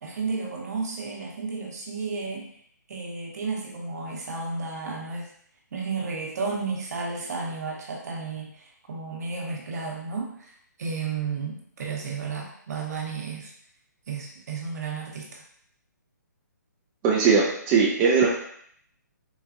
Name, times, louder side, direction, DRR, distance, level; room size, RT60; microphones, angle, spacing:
voice 1, 0.0-2.5 2.9-5.3 5.7-13.5 14.1-15.4, right 4 dB, 60° right, -1 dB, 0.9 m, -33 dB
voice 2, 17.0-18.3, right 5 dB, 20° right, -3 dB, 0.4 m, -20 dB
3.9 x 2.3 x 2.6 m, 0.65 s
hypercardioid pair, 145°, 10 cm